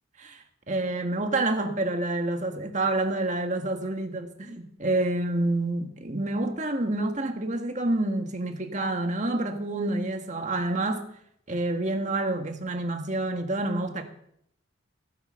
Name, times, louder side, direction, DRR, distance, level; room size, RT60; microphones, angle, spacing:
voice 1, 0.2-11.0 11.5-14.0, right 2 dB, 35° right, 1.6 m, -28 dB
16.0 x 9.6 x 6.9 m
head